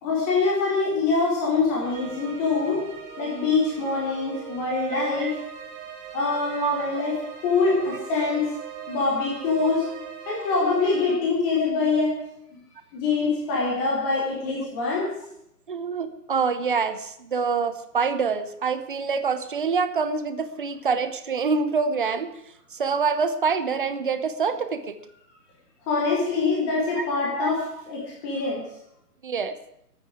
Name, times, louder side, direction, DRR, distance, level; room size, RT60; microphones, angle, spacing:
voice 1, 0.0-2.8 3.2-5.4 6.1-7.2 7.4-8.5 8.9-9.9 10.3-12.1 12.9-15.1 25.9-28.6, left 4 dB, 5° left, -3 dB, 0.9 m, -24 dB
sound 1, 1.8-11.1, right 8 dB, 15° right, 2.5 m, -41 dB
voice 2, 4.9-5.4 6.6-6.9 7.7-8.0 15.7-22.3 22.7-25.0 27.0-27.1 27.4-27.5 29.2-29.6, right 5 dB, 30° right, 10 dB, 0.9 m, -26 dB
22.0 x 9.1 x 4.9 m, 0.78 s
figure-of-eight pair, 145°, 50 cm